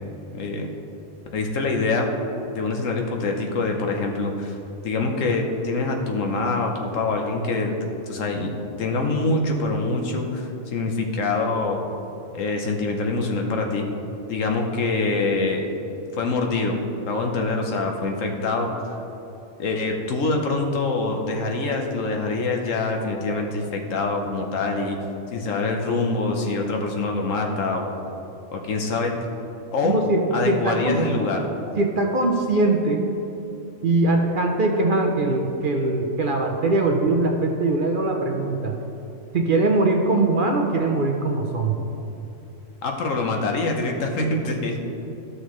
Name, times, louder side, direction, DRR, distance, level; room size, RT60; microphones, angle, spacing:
voice 1, 0.3-0.7 1.3-2.1 2.5-4.5 4.8-8.5 8.8-11.8 12.3-13.9 14.3-15.7 16.1-19.0 19.6-25.0 25.3-27.9 28.5-29.1 29.7-30.0 30.3-31.5 42.8-44.8, left 3 dB, 75° left, 2 dB, 1.3 m, -25 dB
voice 2, 29.8-31.0 31.8-33.1 33.8-38.8 39.3-41.9, right 2 dB, 50° right, 2 dB, 0.7 m, -21 dB
13.5 x 6.4 x 3.1 m, 2.9 s
omnidirectional pair, 1.3 m